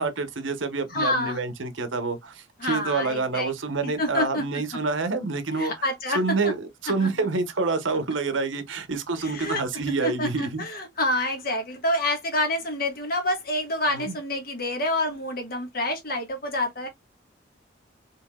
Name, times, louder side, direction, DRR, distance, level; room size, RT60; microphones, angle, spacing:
voice 1, 0.0-5.7 6.1-10.6 13.8-14.1, right 3 dB, 80° right, 0.9 m, -27 dB
voice 2, 0.9-1.4 2.6-3.5 3.8-4.4 5.5-6.5 7.0-7.1 9.2-16.9, left 1 dB, 50° left, 1.4 m, -28 dB
4.7 x 3.3 x 2.3 m
head